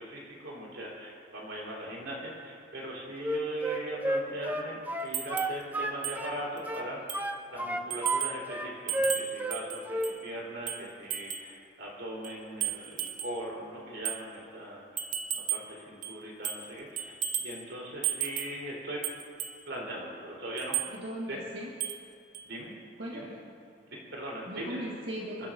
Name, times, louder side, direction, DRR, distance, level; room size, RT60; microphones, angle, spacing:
voice 1, 0.0-15.1 15.3-19.1 19.7-20.8 21.3-21.4 22.4-22.7 23.1-23.3 23.9-24.9 25.4-25.5, right 1 dB, 85° right, -4 dB, 4.0 m, -40 dB
Wind instrument woodwind instrument, 3.2-6.4 6.7-8.2 8.5-9.6 9.9-10.1, right 1 dB, 10° right, 0.6 m, -31 dB
sound 1, 5.1-5.6 6.0-6.2 6.6-6.7 7.1-7.4 7.9-8.4 8.9-10.2 10.7-11.5 12.2-13.4 14.1-14.2 15.0-15.7 16.0-16.7 17.0-17.6 18.0-18.6 19.0-19.6 20.6-20.9 21.8-22.1 22.3-22.5, right 10 dB, 45° right, 0.7 m, -34 dB
voice 2, 20.9-21.7 23.0-23.3 24.5-25.5, equal, 65° right, -5 dB, 1.8 m, -38 dB
28.5 x 12.0 x 2.7 m, 2.5 s
head